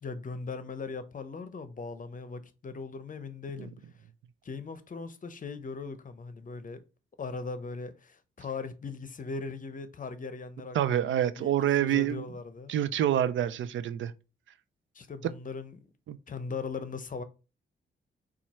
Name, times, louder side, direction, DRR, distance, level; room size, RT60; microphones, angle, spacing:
voice 1, 0.0-3.7 4.4-6.8 7.2-10.8 11.1-11.5 11.8-12.7 14.9-15.8 16.3-17.2, left 4 dB, 40° left, 0.7 m, -39 dB
voice 2, 10.7-12.3 12.7-14.1 16.1-16.2, right 11 dB, 70° right, 0.5 m, -27 dB
4.3 x 2.4 x 4.2 m
supercardioid pair, 55°, 20 cm